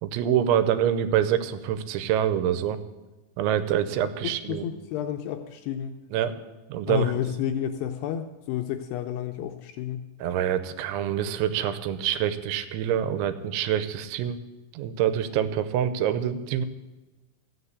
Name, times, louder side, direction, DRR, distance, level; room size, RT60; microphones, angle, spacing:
voice 1, 0.0-2.8 3.4-4.6 6.1-6.3 6.7-7.1 10.2-14.4 14.7-16.7, right 10 dB, 90° right, 12 dB, 3.1 m, -26 dB
voice 2, 4.2-5.9 6.9-10.1, left 10 dB, 80° left, 6 dB, 2.4 m, -30 dB
14.0 x 6.7 x 8.1 m, 1.1 s
omnidirectional pair, 5.2 m